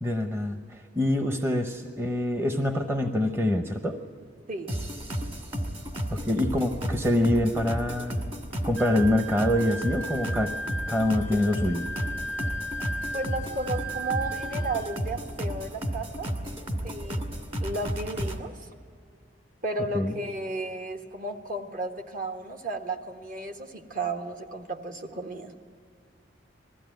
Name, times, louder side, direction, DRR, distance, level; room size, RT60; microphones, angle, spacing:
voice 1, 0.0-4.0 6.1-8.2 8.6-10.5 10.9-11.9 19.9-20.1, left 1 dB, 15° right, 6 dB, 0.9 m, -25 dB
voice 2, 4.5-4.8 13.1-16.3 16.8-17.2 17.6-18.7 19.6-25.5, right 2 dB, 50° right, 4 dB, 1.5 m, -33 dB
sound 1, 4.7-18.4, equal, 35° right, 2.0 m, -33 dB
Wind instrument woodwind instrument, 8.8-15.0, right 1 dB, 80° right, 5.3 m, -36 dB
20.5 x 15.0 x 9.1 m, 2.3 s
head